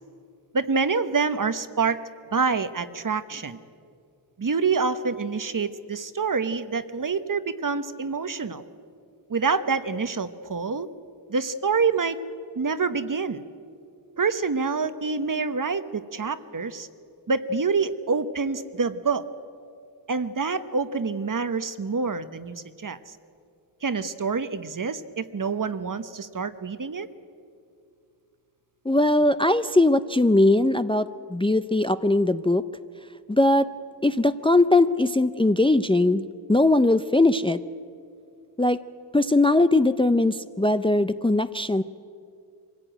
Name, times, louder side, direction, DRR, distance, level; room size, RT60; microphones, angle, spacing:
voice 1, 0.5-2.0 2.3-3.6 4.4-8.6 9.3-10.9 11.3-12.2 12.5-13.4 14.2-16.9 17.3-19.3 20.1-23.0 23.8-27.1, right 4 dB, 50° right, 12 dB, 1.0 m, -26 dB
voice 2, 28.9-32.6 33.3-33.7 34.0-36.2 36.5-37.6 38.6-38.8 39.1-41.8, left 2 dB, 15° left, 11 dB, 0.5 m, -20 dB
24.5 x 16.0 x 9.0 m, 2.5 s
wide cardioid pair, 85°, 43 cm